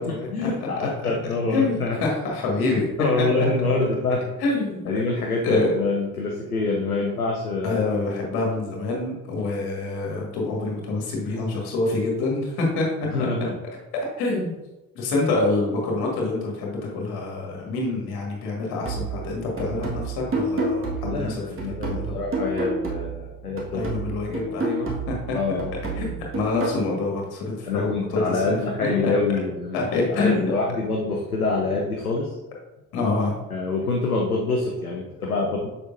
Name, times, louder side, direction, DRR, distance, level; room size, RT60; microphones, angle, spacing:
voice 1, 0.0-2.0 2.7-4.3 4.9-7.8 9.4-9.5 13.0-13.6 21.0-23.9 24.3-24.5 25.3-25.8 27.7-29.8 30.1-32.4 33.5-35.7, left 3 dB, 90° left, -1 dB, 0.6 m, -26 dB
voice 2, 0.8-1.1 1.5-2.9 4.4-4.9 5.4-5.7 7.6-13.1 14.2-14.6 14.9-22.2 23.7-25.4 26.0-29.1 29.7-30.5 32.9-33.3, left 3 dB, 60° left, -1 dB, 1.8 m, -26 dB
sound 1, 18.8-23.3 23.6-26.8, right 2 dB, 30° right, 1.6 m, -29 dB
6.8 x 5.5 x 2.6 m, 1.0 s
figure-of-eight pair, 45°, 43 cm